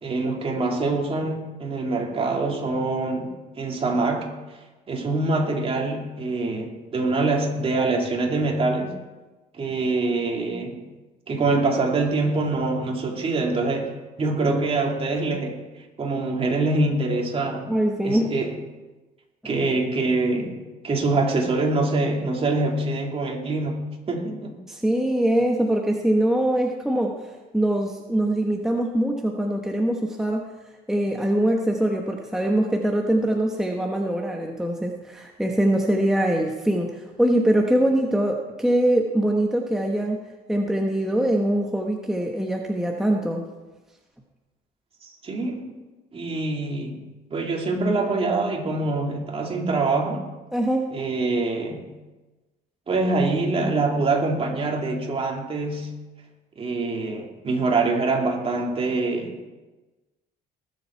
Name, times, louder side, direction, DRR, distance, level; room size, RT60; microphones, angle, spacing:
voice 1, 0.0-4.3 4.9-8.9 9.6-10.9 11.3-13.9 14.2-15.6 16.0-17.7 18.0-18.5 19.4-20.6 20.8-24.5 45.0-45.7 46.1-50.3 50.9-51.9 52.9-55.9 56.6-59.4, right 3 dB, 35° right, 0 dB, 2.7 m, -24 dB
voice 2, 17.7-18.3 24.7-27.1 27.5-30.5 30.9-40.2 40.5-43.4 50.5-50.9, right 1 dB, 5° right, 1 dB, 1.1 m, -23 dB
19.5 x 7.3 x 4.5 m, 1.1 s
cardioid pair, 110°, 17 cm